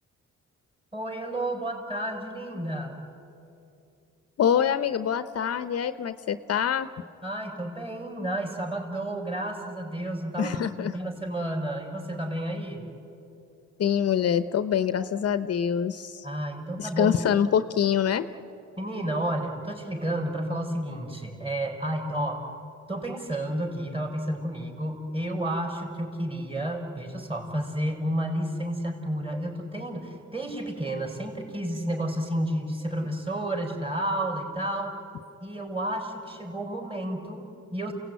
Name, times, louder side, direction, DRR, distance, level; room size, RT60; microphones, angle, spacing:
voice 1, 0.9-3.0 7.2-12.9 16.2-17.2 18.8-22.4 22.9-34.9 35.4-37.9, right 1 dB, 20° right, 2 dB, 5.5 m, -31 dB
voice 2, 4.4-6.9 10.4-11.0 13.8-16.3 16.8-18.2, left 8 dB, 55° left, 12 dB, 0.8 m, -25 dB
28.5 x 17.5 x 9.5 m, 2.7 s
cardioid pair, 90°, 30 cm